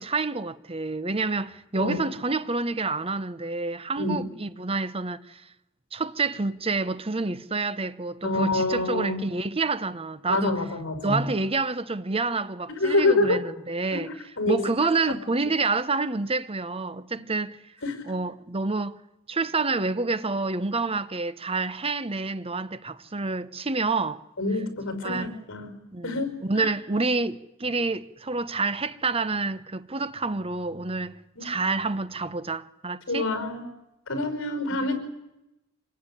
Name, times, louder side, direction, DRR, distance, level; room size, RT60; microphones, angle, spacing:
voice 1, 0.0-5.4 5.9-10.6 11.0-14.1 14.5-17.6 18.1-19.0 19.3-24.2 25.0-25.4 25.9-33.3 34.7-34.9, right 3 dB, 25° right, 1.0 m, -28 dB
voice 2, 8.2-9.2 10.3-11.2 12.7-13.4 13.9-14.0 14.4-14.6 17.8-18.0 24.4-25.7 26.0-26.7 31.4-31.5 33.1-33.6 34.1-34.9, left 2 dB, 65° left, 5.4 m, -26 dB
26.0 x 20.0 x 10.0 m
head